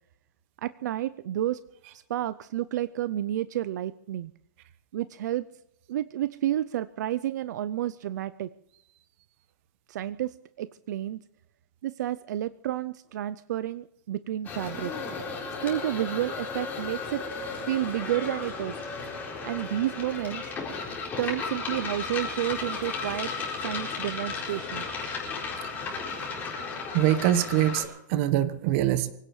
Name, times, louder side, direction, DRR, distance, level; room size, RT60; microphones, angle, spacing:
voice 1, 0.6-1.6 1.9-4.3 4.9-5.5 5.9-8.5 9.9-11.2 11.8-14.9 15.6-17.2 17.7-18.8 19.4-20.5 21.2-23.3 23.6-24.9, right 13 dB, 60° right, 15 dB, 0.5 m, -30 dB
sound 1, 14.4-27.8, left 4 dB, 15° left, 4.2 m, -34 dB
voice 2, 26.9-29.1, right 13 dB, 40° right, 13 dB, 1.3 m, -24 dB
24.5 x 17.0 x 3.2 m, 0.78 s
hypercardioid pair, 160°, 11 cm